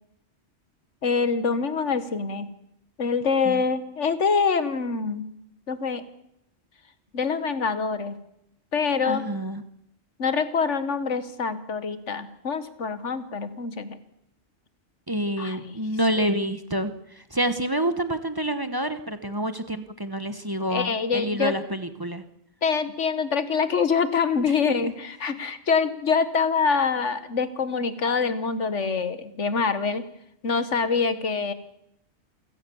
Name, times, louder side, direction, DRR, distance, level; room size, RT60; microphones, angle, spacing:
voice 1, 1.0-2.5 3.0-5.3 5.7-6.0 7.1-8.2 8.7-9.3 10.2-14.0 15.4-15.8 20.7-21.5 22.6-30.1 30.4-31.5, left 5 dB, 85° left, 13 dB, 1.8 m, -25 dB
voice 2, 9.0-9.6 15.1-22.2 24.5-24.9, right 1 dB, 20° right, 10 dB, 1.1 m, -28 dB
28.5 x 16.5 x 7.1 m, 0.79 s
omnidirectional pair, 1.2 m